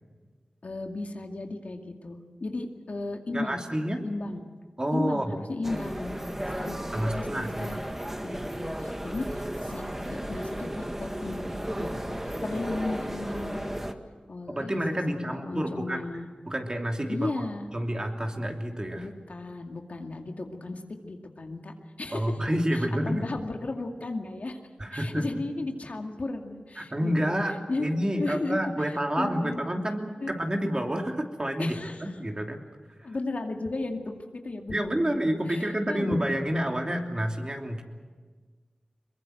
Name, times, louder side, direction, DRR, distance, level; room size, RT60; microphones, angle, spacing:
voice 1, 0.6-3.6 4.0-4.4 4.9-6.2 6.6-7.9 8.2-13.7 14.3-14.7 15.1-16.3 17.1-17.7 19.0-22.4 22.7-24.6 24.9-27.4 27.7-27.9 28.2-28.7 29.2-29.6 30.2-30.3 31.6-32.0 33.0-35.2 35.5-36.4, left 2 dB, 70° left, 3 dB, 2.3 m, -35 dB
voice 2, 3.3-4.0 4.8-5.3 6.9-7.7 14.5-16.0 16.5-17.4 17.7-19.1 22.1-23.2 24.8-25.2 26.8-32.6 34.7-37.8, equal, 30° right, 2 dB, 3.0 m, -29 dB
sound 1, 5.6-13.9, equal, 15° right, 1.7 m, -34 dB
22.5 x 22.0 x 7.9 m, 1.5 s
cardioid pair, 40°, 3 cm